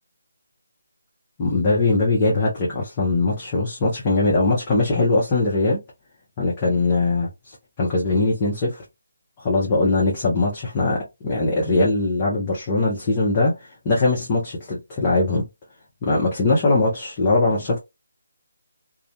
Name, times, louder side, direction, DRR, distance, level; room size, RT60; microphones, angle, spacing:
voice 1, 1.4-5.8 6.4-8.8 9.4-13.5 13.8-15.5 16.0-17.8, left 2 dB, 25° left, 0.7 m, -21 dB
2.4 x 2.1 x 2.8 m
figure-of-eight pair, 155°, 0 cm